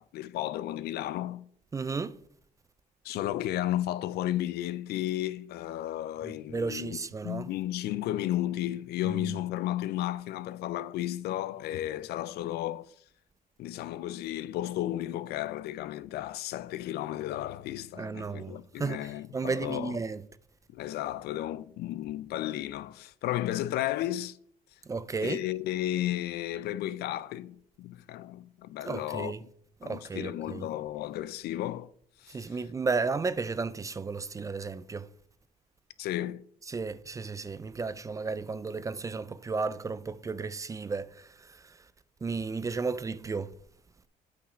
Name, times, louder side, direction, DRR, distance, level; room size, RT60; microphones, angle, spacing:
voice 1, 0.0-1.4 3.0-7.0 7.2-12.9 13.6-20.0 20.7-24.4 25.2-29.5 29.8-31.9 32.2-32.6 36.0-36.4, left 13 dB, 70° left, 0.4 m, -33 dB
voice 2, 1.7-2.2 6.2-7.5 9.1-9.3 18.0-20.2 24.9-25.4 28.9-29.4 29.8-30.6 32.3-35.1 36.7-41.3 42.2-43.5, right 4 dB, 20° right, 0.3 m, -33 dB
8.6 x 5.1 x 5.0 m
cardioid pair, 110°, 17 cm